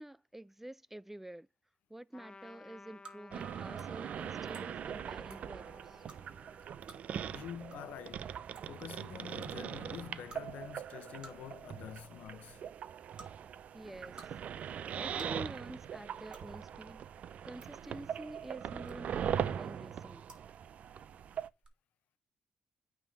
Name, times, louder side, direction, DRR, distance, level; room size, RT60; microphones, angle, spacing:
voice 1, 0.0-1.5 1.9-6.0 13.7-14.2 14.6-17.0 17.4-20.2, right 1 dB, 10° right, 0.4 m, -48 dB
Trumpet, 2.1-8.0, left 3 dB, 35° left, 0.6 m, -57 dB
sound 1, 3.0-3.2 3.8-3.9 4.5-4.7 5.2-5.4 6.1-6.2 6.8-7.0 7.7-7.8 8.0-8.1 8.5-8.8 9.4-9.5 10.3-10.4 11.2-11.5 11.8-12.1 13.1-13.3 13.9-14.3 14.6-14.7 15.2-15.4 16.3-16.4 17.3-17.7 18.8-19.2 20.2-20.4 21.6-21.7, right 3 dB, 35° right, 3.4 m, -53 dB
sound 2, 3.3-21.5, right 8 dB, 65° right, 0.5 m, -41 dB
voice 2, 7.3-8.3 8.7-12.6, left 10 dB, 75° left, 0.8 m, -47 dB
9.0 x 3.7 x 6.1 m
supercardioid pair, 50°, 3 cm